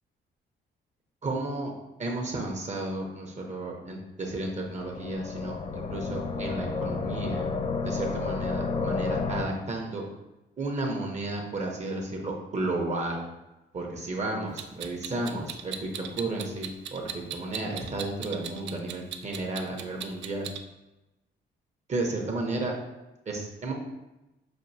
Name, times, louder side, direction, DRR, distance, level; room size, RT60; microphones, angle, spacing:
voice 1, 1.2-1.7 2.0-7.5 7.8-10.1 10.6-13.2 13.7-20.5 21.9-22.7 23.3-23.7, right 2 dB, 35° right, 0 dB, 0.8 m, -33 dB
sound 1, 4.6-9.4, left 4 dB, 30° left, 0.4 m, -31 dB
Clock, 14.6-20.6, right 9 dB, 70° right, 0.4 m, -38 dB
6.0 x 2.6 x 2.7 m, 0.99 s
cardioid pair, 90°, 20 cm